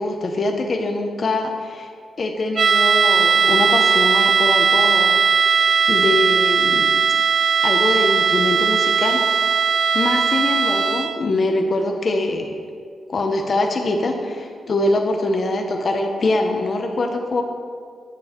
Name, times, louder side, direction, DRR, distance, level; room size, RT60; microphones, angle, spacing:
voice 1, 0.0-1.9 2.2-5.2 5.5-6.9 7.6-9.4 9.9-12.5 13.1-17.4, left 2 dB, 45° left, 3 dB, 0.8 m, -23 dB
sound 1, 2.6-11.3, right 6 dB, 55° right, 0.3 m, -18 dB
9.0 x 6.9 x 4.5 m, 2.1 s
cardioid pair, 95°, 0 cm